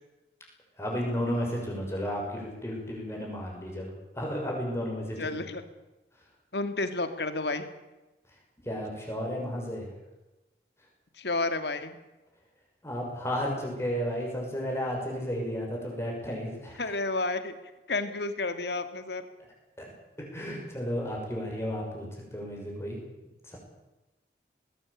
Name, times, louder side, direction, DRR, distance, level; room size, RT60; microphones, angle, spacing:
voice 1, 0.8-5.4 8.6-9.9 12.8-16.9 19.8-19.9 20.3-23.0 23.4-23.6, equal, 15° left, -1 dB, 6.4 m, -33 dB
voice 2, 5.2-5.6 6.5-7.7 11.2-12.0 16.8-17.5 17.9-19.2, left 2 dB, 80° left, 10 dB, 2.2 m, -31 dB
20.0 x 17.5 x 8.7 m, 1.1 s
head